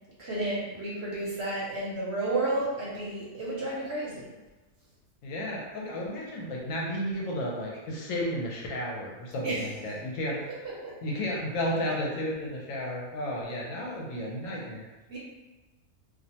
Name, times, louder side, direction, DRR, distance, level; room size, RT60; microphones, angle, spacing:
voice 1, 0.2-4.3 9.4-9.6 10.8-10.9 15.1-15.2, right 2 dB, 60° right, -6 dB, 0.9 m, -31 dB
voice 2, 5.2-10.4 11.0-14.8, left 1 dB, 70° left, -3 dB, 0.9 m, -33 dB
2.5 x 2.0 x 2.7 m, 1.1 s
omnidirectional pair, 1.5 m